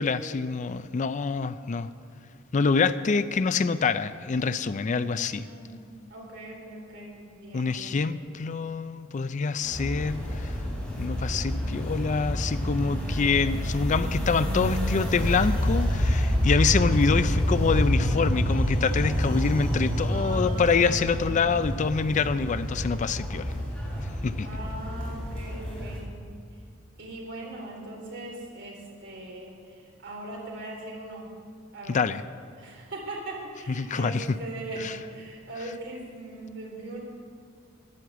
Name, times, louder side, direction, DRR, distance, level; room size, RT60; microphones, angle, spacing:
voice 1, 0.0-1.9 2.5-5.5 7.5-10.5 10.9-23.4 24.2-24.5 31.9-32.2 33.8-34.4 34.8-35.0, left 5 dB, 40° left, 13 dB, 0.4 m, -26 dB
voice 2, 4.9-5.8 6.1-8.0 20.1-21.2 24.4-26.2 27.0-31.3 31.7-32.0 32.6-37.0, right 2 dB, 65° right, -2 dB, 3.6 m, -40 dB
sound 1, 9.6-26.0, equal, 5° left, 3.8 m, -28 dB
11.0 x 10.0 x 8.0 m, 2.2 s
head